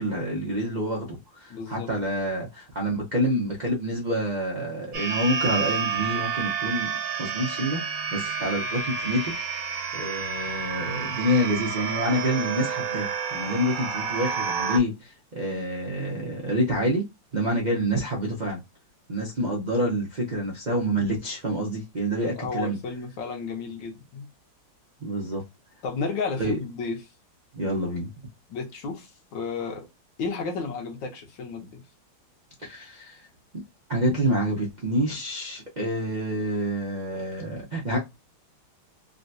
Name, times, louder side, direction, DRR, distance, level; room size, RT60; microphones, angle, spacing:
voice 1, 0.0-6.9 7.2-17.1 17.3-18.6 19.1-22.8 25.0-25.4 26.4-26.6 27.5-28.1 32.6-33.2 33.5-33.6 33.9-38.0, equal, 70° right, 0.4 m, -27 dB
voice 2, 1.5-1.9 22.2-24.3 25.8-27.0 28.5-29.9 30.2-31.8, left 4 dB, 65° left, 1.6 m, -32 dB
sound 1, 4.9-14.8, right 6 dB, 55° right, 1.0 m, -30 dB
3.9 x 2.3 x 2.6 m
omnidirectional pair, 2.3 m